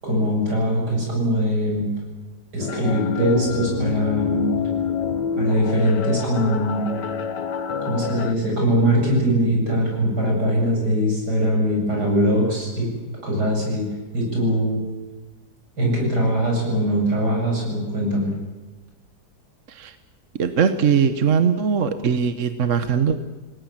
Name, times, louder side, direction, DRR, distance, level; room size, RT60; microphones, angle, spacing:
voice 1, 0.0-1.9 2.5-4.5 5.4-6.9 7.8-12.9 13.2-13.9 14.1-14.8 15.8-18.3, equal, 70° right, -1 dB, 8.7 m, -21 dB
sound 1, 2.6-8.3, left 7 dB, 90° left, 1.8 m, -27 dB
voice 2, 20.4-23.2, right 7 dB, 50° right, 10 dB, 1.3 m, -20 dB
29.5 x 19.0 x 7.5 m, 1.2 s
omnidirectional pair, 1.8 m